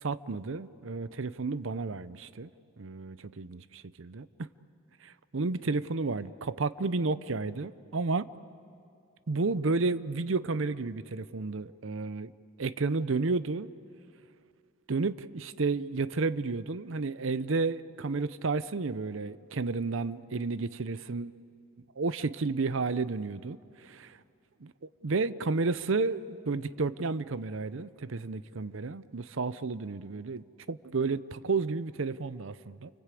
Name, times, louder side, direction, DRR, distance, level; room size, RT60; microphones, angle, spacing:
voice 1, 0.0-2.5 2.8-4.5 5.0-8.3 9.3-12.3 12.6-13.7 14.9-21.3 22.0-24.2 24.6-24.7 25.0-32.9, right 3 dB, 70° right, 15 dB, 0.7 m, -32 dB
29.5 x 24.0 x 8.4 m, 2.5 s
head